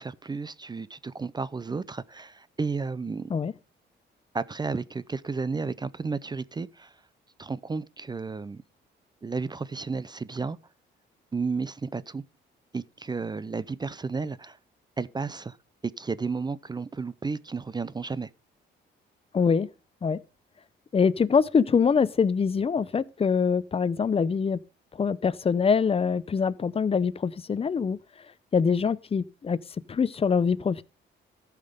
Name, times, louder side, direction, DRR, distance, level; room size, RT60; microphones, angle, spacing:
voice 1, 0.0-3.3 4.3-6.9 7.4-8.6 9.2-10.6 11.3-12.2 12.7-14.6 15.0-15.6 15.8-18.3, right 4 dB, 20° right, 0.5 m, -32 dB
voice 2, 19.3-19.7 20.0-20.2 20.9-24.6 25.0-28.0 28.5-29.6 29.9-30.8, left 6 dB, 30° left, 0.6 m, -24 dB
14.0 x 5.9 x 5.1 m
cardioid pair, 90°, 20 cm